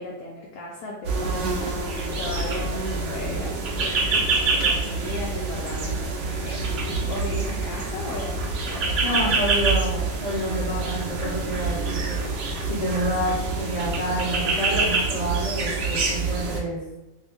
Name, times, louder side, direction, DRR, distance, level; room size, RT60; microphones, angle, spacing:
voice 1, 0.0-4.2 4.5-9.3, left 3 dB, 70° left, -2 dB, 1.0 m, -37 dB
sound 1, 1.0-16.6, right 3 dB, 90° right, 0.5 m, -26 dB
voice 2, 9.0-12.2 12.7-16.8, equal, 30° left, -6 dB, 0.7 m, -28 dB
2.6 x 2.6 x 3.5 m, 1.0 s
omnidirectional pair, 1.8 m